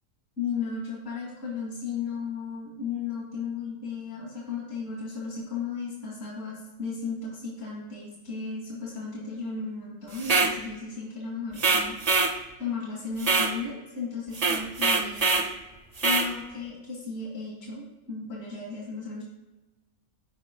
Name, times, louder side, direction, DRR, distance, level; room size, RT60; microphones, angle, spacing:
voice 1, 0.4-12.1 12.6-15.5 16.0-19.2, left 5 dB, 65° left, -3 dB, 2.3 m, -35 dB
sound 1, 10.2-10.6 11.6-12.4 13.2-13.5 14.3-15.5 16.0-16.3, right 3 dB, 45° right, 0.5 m, -23 dB
15.0 x 5.0 x 2.2 m, 1.1 s
omnidirectional pair, 1.5 m